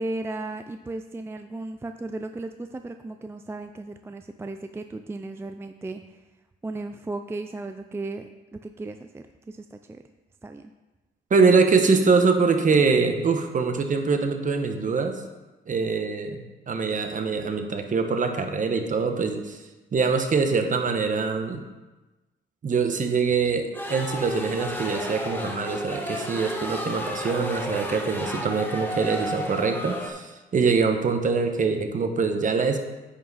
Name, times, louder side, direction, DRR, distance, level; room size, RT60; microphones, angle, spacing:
voice 1, 0.0-6.2 6.6-10.0 10.4-10.7, right 2 dB, 10° right, 7 dB, 0.4 m, -35 dB
voice 2, 11.3-15.2 15.7-19.6 19.9-21.6 22.6-32.8, right 4 dB, 40° right, 6 dB, 1.1 m, -23 dB
sound 1, 23.7-30.1, equal, 10° left, 1.4 m, -32 dB
9.8 x 5.8 x 4.1 m, 1.2 s
cardioid pair, 90°, 20 cm